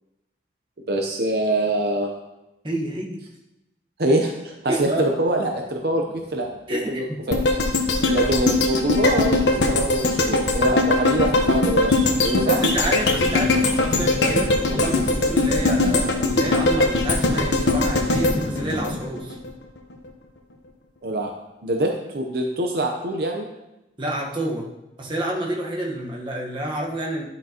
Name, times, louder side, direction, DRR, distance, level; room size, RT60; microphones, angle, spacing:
voice 1, 0.9-2.1 4.0-6.0 6.3-7.4 8.1-12.6 21.0-21.3 21.6-23.5, right 1 dB, 60° right, 2 dB, 0.7 m, -24 dB
voice 2, 2.6-3.2 4.7-5.0 6.7-7.2 12.4-19.4 24.0-24.7 25.0-27.3, right 1 dB, 30° right, -2 dB, 1.1 m, -28 dB
sound 1, 5.4-6.9 7.3-7.4 8.2-18.9, equal, ahead, 2.6 m, -38 dB
sound 2, 7.3-19.5 19.9-20.0, left 2 dB, 85° left, 0.9 m, -21 dB
11.0 x 5.9 x 2.9 m, 0.95 s
head